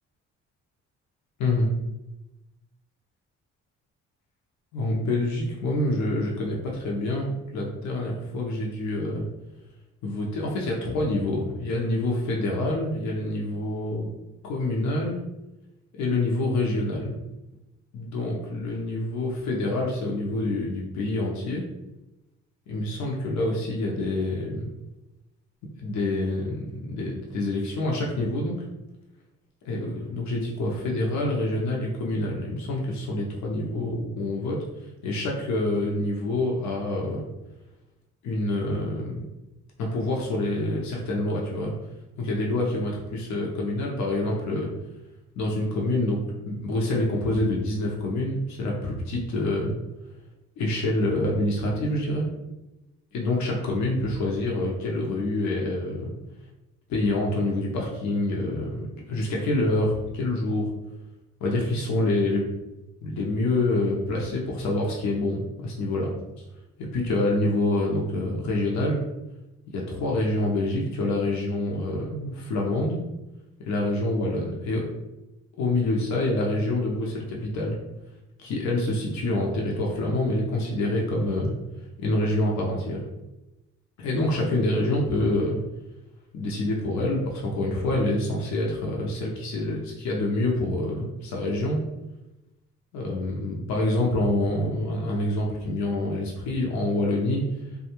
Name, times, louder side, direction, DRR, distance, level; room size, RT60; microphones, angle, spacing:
voice 1, 4.7-9.2 10.0-14.1 14.4-15.2 16.0-17.2 17.9-21.6 22.7-24.7 25.8-28.6 29.6-34.6 35.0-37.2 38.2-39.2 39.8-41.7 42.2-44.7 45.4-46.2 46.5-49.7 50.6-52.3 53.1-56.1 56.9-60.7 61.4-62.5 63.0-66.1 66.8-69.0 69.7-73.0 73.6-74.8 75.6-77.8 78.4-81.5 82.0-83.0 84.0-85.6 86.3-91.8 92.9-97.4, left 2 dB, 70° left, -2 dB, 0.7 m, -26 dB
2.5 x 2.3 x 2.9 m, 0.97 s
cardioid pair, 90°, 30 cm